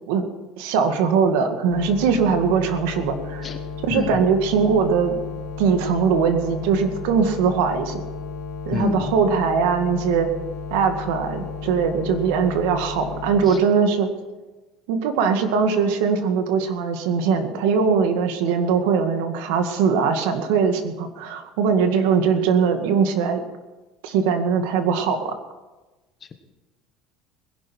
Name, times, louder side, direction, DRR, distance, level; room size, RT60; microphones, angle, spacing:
voice 1, 0.6-3.5 3.8-5.2 5.6-8.1 8.7-10.3 10.7-14.1 14.9-23.4 24.0-25.3, right 6 dB, 90° right, 6 dB, 2.0 m, -21 dB
sound 1, 1.7-13.5, left 6 dB, 75° left, 2.6 m, -34 dB
voice 2, 8.7-9.1 13.5-13.6, left 5 dB, 20° left, 7 dB, 1.2 m, -27 dB
20.5 x 11.0 x 4.6 m, 1.1 s
cardioid pair, 175°, 0 cm